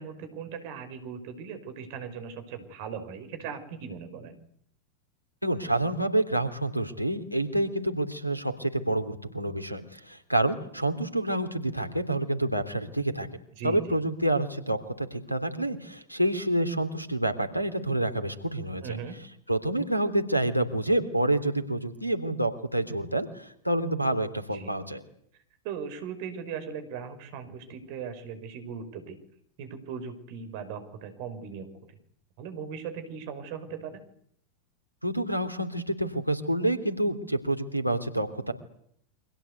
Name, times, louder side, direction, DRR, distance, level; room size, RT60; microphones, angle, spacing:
voice 1, 0.0-4.4 13.5-14.0 18.8-19.2 24.5-24.7 25.6-29.2 29.6-31.9 32.4-34.0, right 6 dB, 45° right, 10 dB, 5.7 m, -38 dB
voice 2, 5.4-13.3 13.6-19.0 19.5-25.0 35.0-38.5, right 1 dB, 90° left, 12 dB, 3.3 m, -28 dB
29.0 x 25.0 x 8.4 m, 0.68 s
figure-of-eight pair, 90°, 0 cm